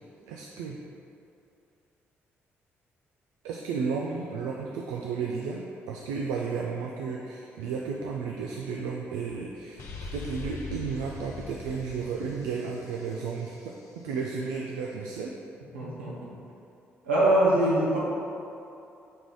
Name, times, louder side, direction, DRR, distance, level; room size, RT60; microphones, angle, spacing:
voice 1, 0.3-0.8 3.4-9.8 10.1-15.3, right 5 dB, 70° right, -1 dB, 0.5 m, -33 dB
sound 1, 9.8-13.5, left 3 dB, 55° left, 0.8 m, -41 dB
voice 2, 15.7-16.3 17.0-18.0, right 1 dB, 85° right, -7 dB, 1.3 m, -23 dB
7.6 x 4.7 x 4.0 m, 2.7 s
figure-of-eight pair, 40°, 6 cm